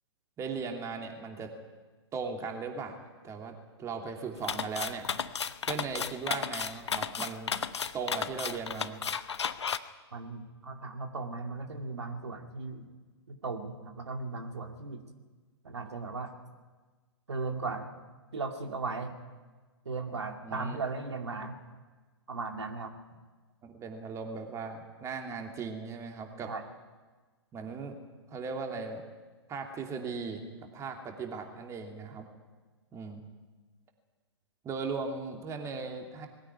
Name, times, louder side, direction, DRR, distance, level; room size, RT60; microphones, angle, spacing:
voice 1, 0.4-1.5 2.1-3.5 3.8-5.1 5.6-7.6 7.9-9.0 20.4-20.8 23.6-26.5 27.5-28.0 28.3-29.0 29.5-30.4 30.7-32.3 32.9-33.2 34.6-36.3, right 5 dB, 20° right, 3 dB, 2.9 m, -38 dB
sound 1, 4.4-9.8, left 6 dB, 75° left, 1.0 m, -33 dB
voice 2, 10.1-12.9 13.3-15.0 15.6-16.3 17.3-17.9 18.3-19.1 19.8-21.6 22.3-22.9 26.5-26.6, right 3 dB, 75° right, 4 dB, 2.6 m, -37 dB
21.5 x 15.5 x 9.6 m, 1.3 s
figure-of-eight pair, 115°, 15 cm